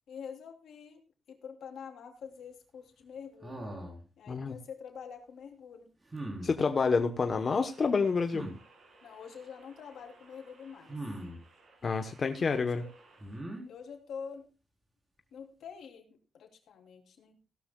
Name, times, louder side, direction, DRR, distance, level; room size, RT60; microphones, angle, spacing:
voice 1, 0.1-3.6 4.2-5.9 9.0-11.0 12.5-12.9 13.7-14.5 15.3-17.4, left 6 dB, 80° left, 3 dB, 3.0 m, -46 dB
sound 1, 3.4-4.0 6.1-6.5 8.3-8.6 10.9-11.4 13.2-13.6, right 1 dB, 25° right, 3.8 m, -40 dB
sound 2, 6.2-13.6, right 3 dB, 60° right, 5.8 m, -61 dB
voice 2, 6.4-8.4 11.8-12.8, left 4 dB, 40° left, 6 dB, 1.0 m, -28 dB
17.0 x 12.5 x 2.3 m, 0.31 s
cardioid pair, 120°, 0 cm